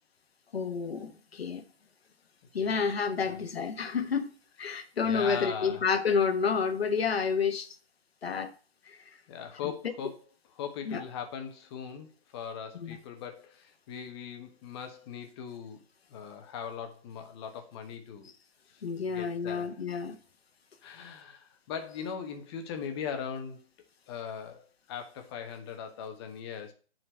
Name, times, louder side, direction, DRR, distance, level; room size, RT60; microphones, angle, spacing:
voice 1, 0.5-1.6 2.5-4.3 4.6-7.7 8.2-8.5 8.9-9.0 9.6-9.7 10.9-11.0 12.8-13.0 18.8-20.2, left 5 dB, 60° left, 1.4 m, -29 dB
voice 2, 4.7-5.8 9.3-10.2 10.6-15.8 16.1-18.3 19.1-19.8 20.8-23.6 24.1-26.7, left 7 dB, 25° left, 1.3 m, -40 dB
9.9 x 4.5 x 5.4 m
figure-of-eight pair, 145°, 34 cm